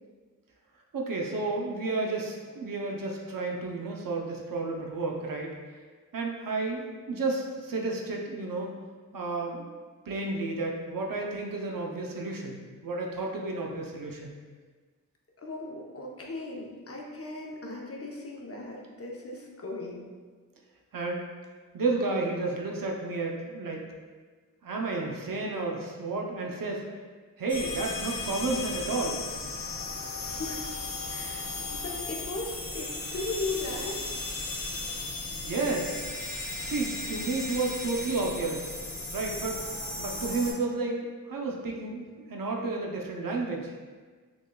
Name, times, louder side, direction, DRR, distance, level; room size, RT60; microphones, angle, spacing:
voice 1, 0.9-5.5 6.1-8.7 9.1-9.8 10.1-14.4 20.9-21.2 21.7-23.8 24.6-26.8 27.4-29.2 35.4-36.1 36.6-38.8 39.1-39.6 40.0-41.0 41.3-43.7, right 3 dB, 80° right, -1 dB, 0.6 m, -31 dB
voice 2, 15.4-20.0 30.2-30.6 31.1-31.5 31.7-34.0, left 2 dB, 45° left, -1 dB, 0.7 m, -37 dB
sound 1, 27.5-40.5, left 3 dB, 75° left, 0.8 m, -36 dB
5.9 x 2.2 x 2.2 m, 1.5 s
wide cardioid pair, 50°, 33 cm